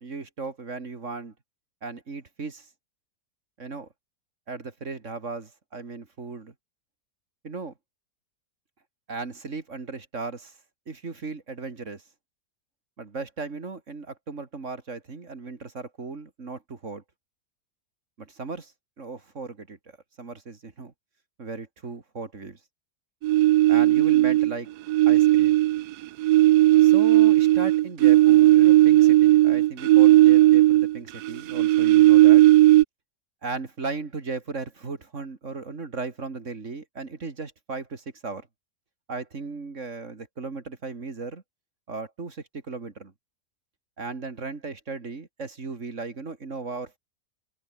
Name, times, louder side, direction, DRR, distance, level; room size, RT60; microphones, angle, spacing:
voice 1, 0.0-1.3 1.8-2.7 3.6-3.9 4.5-6.5 7.4-7.7 9.1-10.5 10.9-12.0 13.0-17.0 18.2-18.7 19.0-19.8 20.2-20.9 21.4-22.6 23.7-24.7 25.1-25.6 26.8-32.4 33.4-38.5 39.1-41.4 41.9-43.1 44.0-47.0, right 4 dB, 50° right, 2.6 m, -36 dB
sound 1, 23.2-24.5 24.9-31.0 31.2-32.8, right 16 dB, 80° right, 1.1 m, -16 dB
omnidirectional pair, 1.7 m